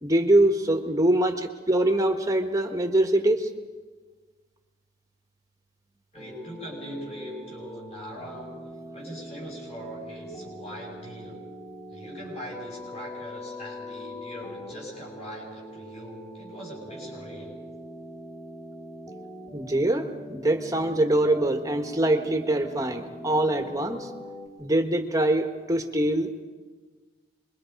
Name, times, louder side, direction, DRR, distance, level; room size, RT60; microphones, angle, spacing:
voice 1, 0.0-3.5 19.5-24.1 24.6-26.4, right 1 dB, 20° right, 5 dB, 1.2 m, -24 dB
voice 2, 6.1-8.5 8.9-11.4 11.9-17.5, equal, 35° left, -2 dB, 6.5 m, -41 dB
sound 1, 6.1-24.5, equal, 15° left, 2.9 m, -42 dB
27.0 x 22.5 x 5.2 m, 1.4 s
head